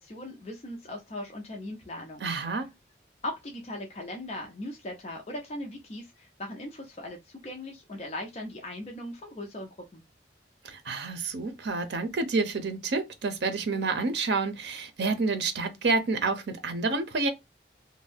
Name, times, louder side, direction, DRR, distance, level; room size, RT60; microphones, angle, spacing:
voice 1, 0.0-2.3 3.2-10.0, left 1 dB, 35° left, 0.5 m, -39 dB
voice 2, 2.2-2.7 10.6-17.3, right 3 dB, 75° right, 0.6 m, -29 dB
2.6 x 2.1 x 3.4 m
head